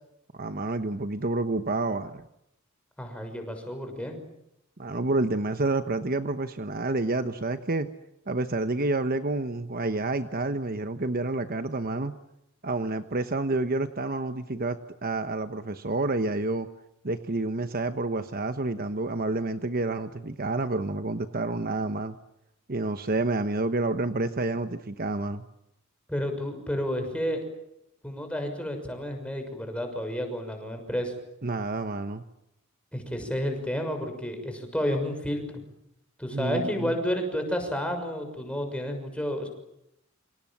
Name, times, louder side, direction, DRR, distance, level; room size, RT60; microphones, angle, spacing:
voice 1, 0.3-2.2 4.8-7.9 8.3-12.1 12.6-16.7 17.0-22.2 22.7-25.4 31.4-32.2 36.3-37.0, right 2 dB, 45° right, 9 dB, 1.1 m, -29 dB
voice 2, 3.0-4.2 26.1-27.4 28.0-31.1 32.9-35.4 36.2-39.5, equal, 5° left, 5 dB, 6.3 m, -31 dB
28.5 x 26.5 x 7.4 m, 0.82 s
head